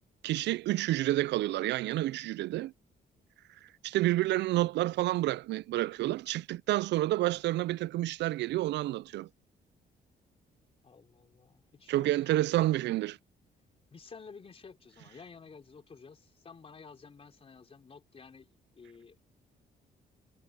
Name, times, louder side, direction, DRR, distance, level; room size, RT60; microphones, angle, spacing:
voice 1, 0.2-2.7 3.8-9.3 11.9-13.2, right 16 dB, 80° right, 0.4 m, -29 dB
voice 2, 10.8-12.1 12.6-12.7 13.9-18.5 18.8-19.2, left 5 dB, 35° left, 3.9 m, -52 dB
cardioid pair, 120°, 18 cm